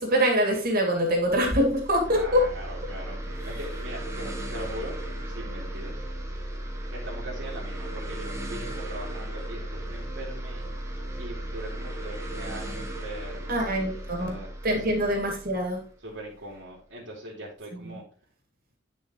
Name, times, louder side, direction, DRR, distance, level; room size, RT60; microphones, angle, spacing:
voice 1, 0.0-2.4 13.5-14.4 14.6-15.8 17.7-18.0, equal, 50° right, 1 dB, 2.7 m, -24 dB
sound 1, 1.2-16.6, right 1 dB, 15° right, 1.5 m, -36 dB
voice 2, 2.1-5.0 5.2-5.9 6.6-10.7 11.2-14.5 14.9-15.0 16.0-18.0, right 1 dB, 75° right, -6 dB, 2.8 m, -41 dB
10.5 x 5.6 x 3.1 m, 0.40 s
head